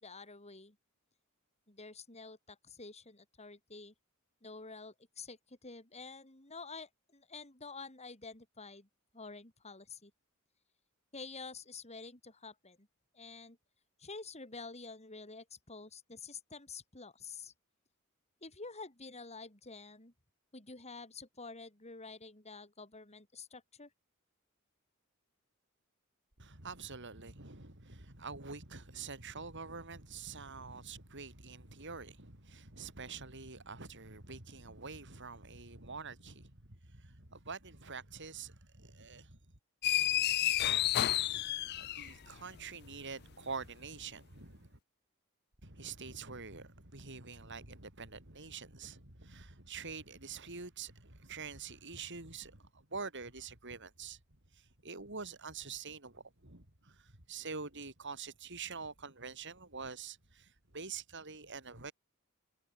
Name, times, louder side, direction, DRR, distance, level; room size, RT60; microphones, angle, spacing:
voice 1, 0.0-0.8 1.7-3.9 4.4-8.9 9.1-10.1 11.1-12.9 13.1-13.6 14.0-17.5 18.4-20.1 20.5-23.9, left 4 dB, 30° left, 4.7 m, -49 dB
voice 2, 26.4-39.4 41.7-44.8 45.6-54.2 54.5-61.9, right 5 dB, 60° right, 5.8 m, -46 dB
sound 1, 39.8-42.3, left 13 dB, 50° left, 0.4 m, -30 dB
head